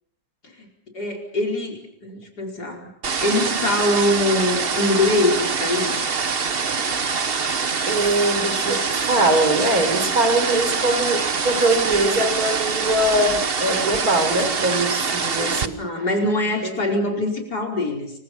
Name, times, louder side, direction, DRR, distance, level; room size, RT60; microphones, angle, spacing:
voice 1, 0.9-2.9 3.2-6.1 15.8-18.1, left 2 dB, 65° left, 1 dB, 5.6 m, -23 dB
sound 1, 3.0-15.7, right 5 dB, 35° right, 1.2 m, -24 dB
voice 2, 7.9-15.8, right 1 dB, 55° right, 8 dB, 4.6 m, -22 dB
30.0 x 24.5 x 5.7 m, 0.71 s
omnidirectional pair, 1.9 m